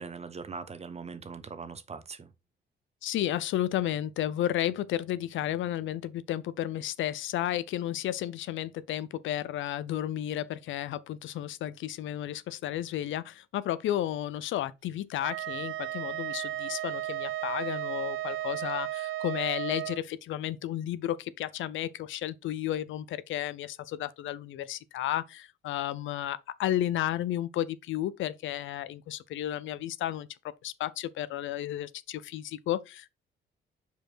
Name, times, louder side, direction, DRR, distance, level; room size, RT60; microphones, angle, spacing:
voice 1, 0.0-2.3, right 5 dB, 30° right, 0.9 m, -41 dB
voice 2, 3.0-33.1, left 12 dB, 75° left, 0.5 m, -33 dB
Wind instrument woodwind instrument, 15.2-20.0, right 14 dB, 80° right, 0.4 m, -34 dB
5.1 x 4.6 x 4.4 m
cardioid pair, 90°, 20 cm